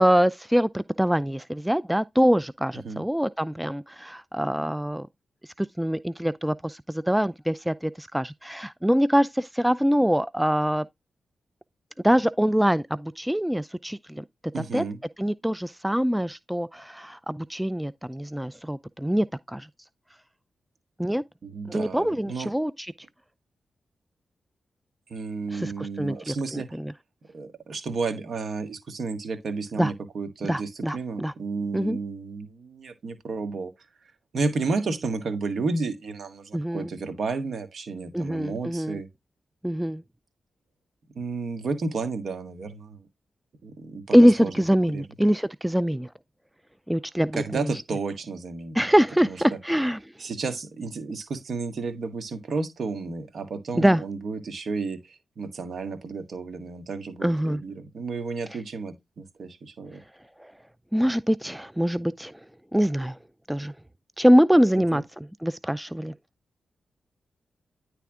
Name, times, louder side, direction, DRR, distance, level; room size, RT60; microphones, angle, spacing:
voice 1, 0.0-5.1 5.6-10.9 12.0-14.2 14.6-14.8 15.2-19.7 21.0-21.2 21.7-22.9 25.5-26.9 29.8-29.9 30.5-31.3 31.7-32.0 36.5-36.9 38.1-39.0 39.6-40.0 44.1-46.1 46.9-47.7 48.7-50.0 53.7-54.0 57.2-57.6 60.4-60.5 60.9-62.4 62.7-63.2 63.5-63.7 64.2-65.0 65.4-66.1, equal, 5° right, 0.4 m, -24 dB
voice 2, 14.5-15.0 21.4-22.5 25.1-26.8 27.3-33.7 34.3-39.1 41.1-43.1 43.6-44.5 44.9-45.0 47.3-48.8 49.2-49.4 50.2-60.0 64.7-65.0, right 4 dB, 70° right, 1.7 m, -32 dB
10.0 x 3.4 x 3.6 m
supercardioid pair, 45°, 0 cm